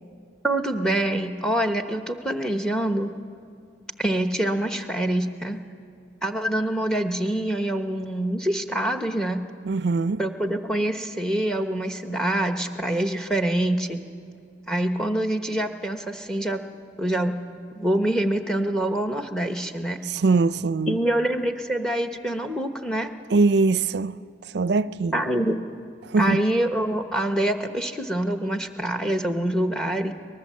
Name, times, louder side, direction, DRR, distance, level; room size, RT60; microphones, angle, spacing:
voice 1, 0.4-3.1 4.0-5.6 6.2-9.4 10.2-14.0 14.7-16.6 17.0-17.4 17.7-20.0 20.9-23.1 25.1-25.6 26.2-30.1, right 1 dB, 5° left, 0.9 m, -25 dB
voice 2, 9.7-10.2 20.1-21.0 23.3-24.2 24.5-25.2 26.1-26.4, right 3 dB, 60° right, 0.4 m, -22 dB
23.0 x 19.5 x 7.4 m
head